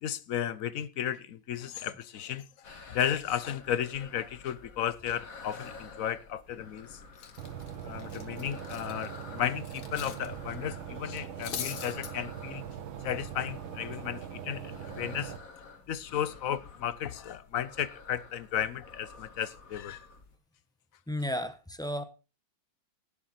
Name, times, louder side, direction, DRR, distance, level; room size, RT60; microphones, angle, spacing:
voice 1, 0.0-2.5 2.9-7.0 7.8-12.6 13.0-15.3 15.9-20.0, left 10 dB, 60° left, 0.9 m, -34 dB
sound 1, 2.6-20.4, left 4 dB, 45° left, 2.1 m, -51 dB
Cutlery silverware, 6.5-6.8 7.1-10.3 10.5-10.7 11.1-12.1, left 8 dB, 80° left, 2.1 m, -42 dB
sound 2, 7.4-15.4, right 9 dB, 75° right, 2.1 m, -41 dB
voice 2, 21.1-22.0, equal, 5° left, 0.7 m, -33 dB
18.0 x 7.2 x 4.3 m
omnidirectional pair, 2.2 m